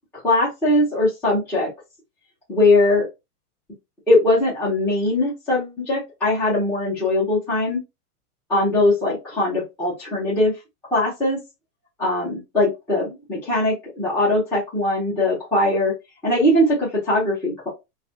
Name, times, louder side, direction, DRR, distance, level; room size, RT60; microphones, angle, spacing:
voice 1, 0.2-1.7 2.5-3.1 4.1-7.8 8.5-10.5 10.9-11.4 12.0-15.9 16.2-17.7, left 2 dB, 5° left, -10 dB, 0.7 m, -20 dB
2.6 x 2.4 x 2.6 m, 0.23 s
supercardioid pair, 160°, 46 cm